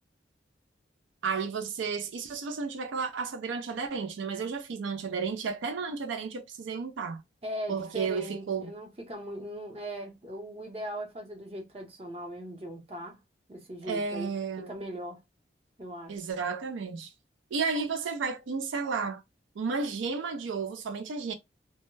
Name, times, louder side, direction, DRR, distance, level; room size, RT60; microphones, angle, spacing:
voice 1, 1.2-7.2 7.7-8.7 13.8-14.7 16.1-17.1 17.5-19.2 19.6-21.3, right 5 dB, 90° right, 0.4 m, -32 dB
voice 2, 7.4-13.2 13.5-14.3 14.7-15.2 15.8-16.2, equal, 30° right, 0.7 m, -39 dB
2.2 x 2.1 x 3.0 m
head